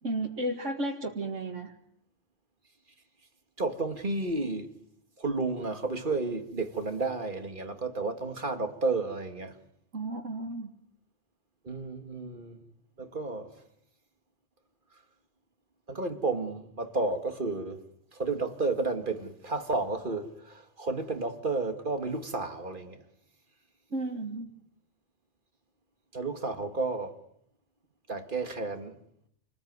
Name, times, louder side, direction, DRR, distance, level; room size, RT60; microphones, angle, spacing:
voice 1, 0.0-1.7 9.9-10.7 23.9-24.5, right 1 dB, 85° right, 2.5 m, -33 dB
voice 2, 3.6-4.7 5.2-9.6 11.6-12.6 13.0-13.6 15.9-17.8 18.1-23.0 26.1-27.2 28.1-29.0, right 3 dB, 45° right, 2.3 m, -32 dB
29.0 x 20.5 x 9.5 m
omnidirectional pair, 1.2 m